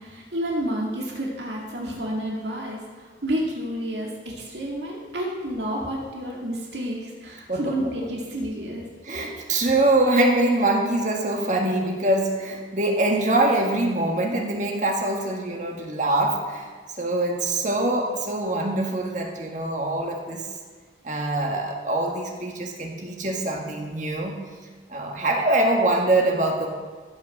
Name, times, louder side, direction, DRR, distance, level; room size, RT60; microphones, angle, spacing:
voice 1, 0.0-8.9 9.5-9.6, equal, 75° right, -3 dB, 2.3 m, -30 dB
voice 2, 9.0-16.7 17.0-20.5 21.0-24.4 24.9-26.7, right 2 dB, 45° right, 1 dB, 1.7 m, -24 dB
15.0 x 6.3 x 6.6 m, 1.5 s
head